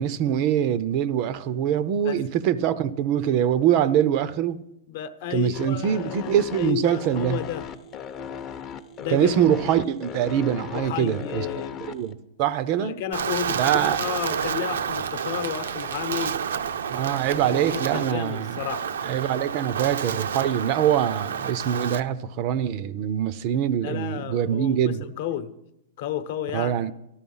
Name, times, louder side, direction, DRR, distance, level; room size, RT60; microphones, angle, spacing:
voice 1, 0.0-4.6 5.3-7.4 9.1-11.5 11.8-13.0 13.6-14.0 16.9-18.6 19.0-25.1 26.5-26.9, right 10 dB, 35° right, 0.5 m, -24 dB
voice 2, 4.9-7.7 9.0-9.3 10.7-12.0 12.8-16.4 17.5-18.9 23.8-25.5 26.0-26.8, left 10 dB, 45° left, 0.9 m, -32 dB
sound 1, 5.5-12.1, left 7 dB, 20° left, 0.7 m, -37 dB
Wind, 13.1-22.0, right 7 dB, 90° right, 0.7 m, -30 dB
13.0 x 11.5 x 5.5 m
supercardioid pair, 165°, 0 cm